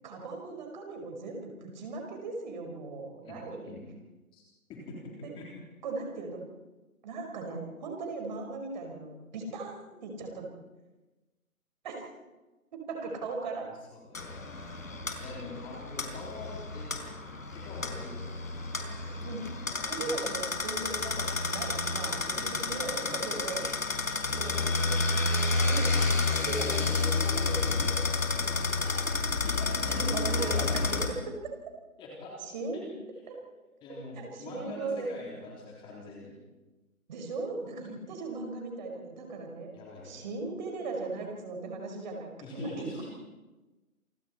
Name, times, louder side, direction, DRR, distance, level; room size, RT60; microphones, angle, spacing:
voice 1, 0.0-3.7 5.2-5.3 5.8-6.4 7.0-10.5 11.8-12.1 12.7-13.7 19.0-19.5 19.8-23.6 24.2-25.1 25.7-25.9 26.3-28.0 29.8-30.7 30.9-31.4 32.4-32.9 33.3-33.4 34.1-35.1 37.1-39.7 40.0-43.0, right 3 dB, 30° right, 2 dB, 5.1 m, -38 dB
voice 2, 3.2-3.8 4.3-4.4 4.7-5.5 12.9-13.1 13.9-16.9 17.5-18.3 18.6-18.8 24.5-24.9 28.2-29.0 29.4-30.1 32.0-32.3 32.7-32.8 33.8-36.4 39.7-40.2 42.4-43.1, left 2 dB, 10° left, -3 dB, 3.6 m, -44 dB
sound 1, 14.1-31.1, left 3 dB, 65° left, 4.5 m, -30 dB
28.5 x 24.0 x 4.4 m, 1.1 s
figure-of-eight pair, 145°, 44 cm